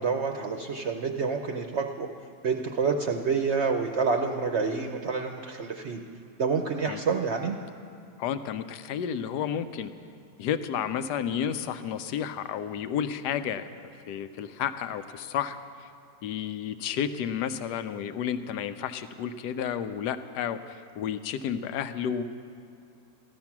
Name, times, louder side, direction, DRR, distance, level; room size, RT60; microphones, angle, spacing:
voice 1, 0.0-2.1 2.4-6.0 6.4-7.6, right 5 dB, 55° right, 4 dB, 0.8 m, -28 dB
voice 2, 8.2-9.9 10.4-13.7 14.1-15.9 16.2-22.2, left 8 dB, 85° left, 11 dB, 1.2 m, -31 dB
14.5 x 12.5 x 5.9 m, 2.4 s
omnidirectional pair, 1.7 m